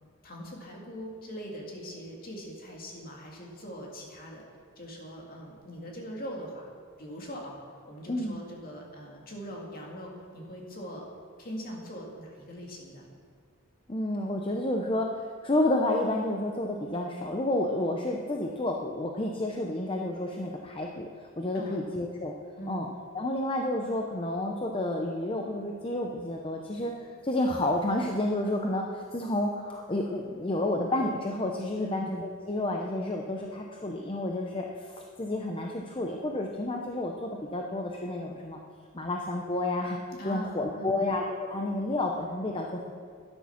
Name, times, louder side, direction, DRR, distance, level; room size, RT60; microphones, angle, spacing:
voice 1, 0.2-4.5 4.8-6.7 7.0-7.6 7.8-11.1 11.4-13.1 21.5-21.9 22.6-22.9 31.8-32.1 40.2-41.0, equal, 40° left, -1 dB, 2.3 m, -41 dB
voice 2, 13.9-22.3 22.7-22.9 23.1-38.6 38.9-42.9, left 1 dB, 25° left, 1 dB, 0.7 m, -30 dB
12.5 x 10.0 x 5.8 m, 2.1 s
head